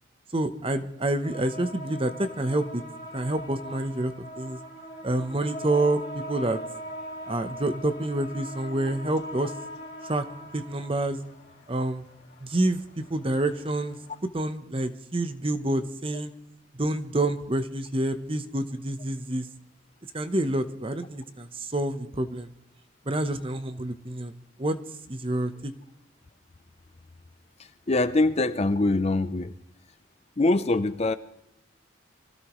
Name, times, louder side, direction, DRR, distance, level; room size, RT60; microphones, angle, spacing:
voice 1, 0.3-2.8 3.1-4.6 5.0-6.6 7.3-9.5 10.0-10.2 10.5-11.2 11.7-12.1 12.4-14.0 14.3-16.3 16.7-19.5 20.1-22.5 23.1-24.3 24.6-24.8 25.1-25.7, right 1 dB, 25° right, 10 dB, 0.9 m, -28 dB
sound 1, 1.2-14.2, equal, 60° left, 3.6 m, -41 dB
voice 2, 27.6-29.5 30.4-31.2, left 2 dB, 30° left, 12 dB, 0.6 m, -24 dB
24.5 x 16.0 x 3.1 m, 0.83 s
head